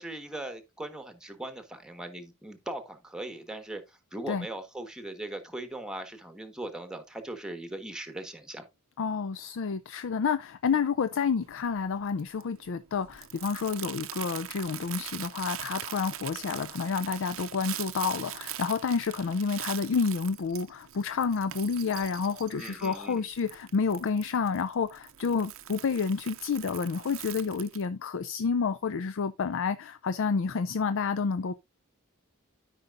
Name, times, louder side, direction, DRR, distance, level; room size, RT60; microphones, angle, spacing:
voice 1, 0.0-8.6 22.5-23.3, right 1 dB, 5° right, 1.2 m, -39 dB
voice 2, 9.0-31.5, left 5 dB, 60° left, 0.4 m, -29 dB
Crumpling crinkling, 11.4-27.9, right 13 dB, 65° right, 0.6 m, -42 dB
13.0 x 5.4 x 2.5 m
head